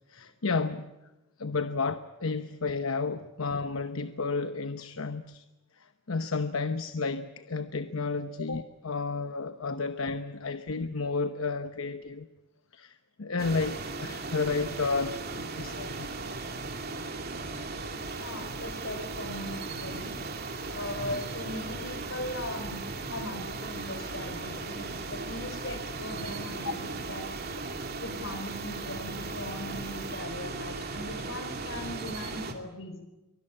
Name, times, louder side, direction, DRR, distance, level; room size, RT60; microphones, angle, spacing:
voice 1, 0.1-0.9 1.4-5.4 5.8-12.3 12.7-15.2 15.6-16.1 26.6-26.7, left 4 dB, 85° left, 0.9 m, -32 dB
sound 1, 13.4-32.5, right 3 dB, 50° right, 2.7 m, -37 dB
voice 2, 18.1-20.2 20.7-27.4 28.0-33.0, left 1 dB, 65° left, 4.5 m, -39 dB
24.0 x 19.5 x 8.7 m
head